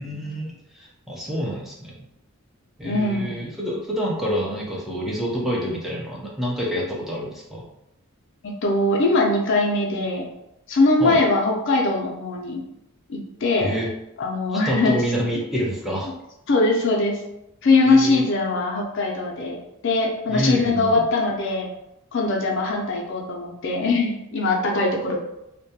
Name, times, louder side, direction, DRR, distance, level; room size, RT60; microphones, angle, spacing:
voice 1, 0.0-2.0 2.8-7.7 11.0-11.2 13.6-13.9 14.5-16.1 17.8-18.2 20.3-21.1, equal, ahead, -4 dB, 0.4 m, -27 dB
voice 2, 2.8-3.4 8.4-10.2 10.7-12.6 13.1-13.7 14.2-15.0 15.5-15.6 16.5-17.2 17.6-19.6 19.8-21.7 22.1-25.2, left 2 dB, 60° left, 1 dB, 0.4 m, -21 dB
2.2 x 2.1 x 2.7 m, 0.87 s
head